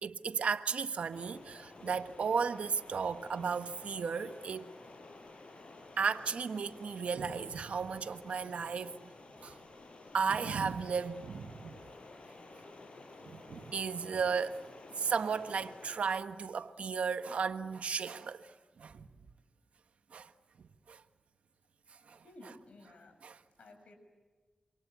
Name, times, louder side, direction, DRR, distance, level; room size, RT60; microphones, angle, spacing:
voice 1, 0.0-4.7 6.0-8.9 9.4-9.6 10.1-11.8 13.3-14.6 15.0-18.5 18.8-19.1 20.1-20.3 20.9-21.0 22.1-22.2 23.2-23.4, right 5 dB, 85° right, 1.3 m, -34 dB
Stream, 1.1-16.2, left 3 dB, 60° left, 6.1 m, -52 dB
voice 2, 22.2-23.1 23.6-24.0, left 2 dB, 80° left, 6.9 m, -54 dB
28.0 x 26.0 x 8.1 m
cardioid pair, 60°, 2 cm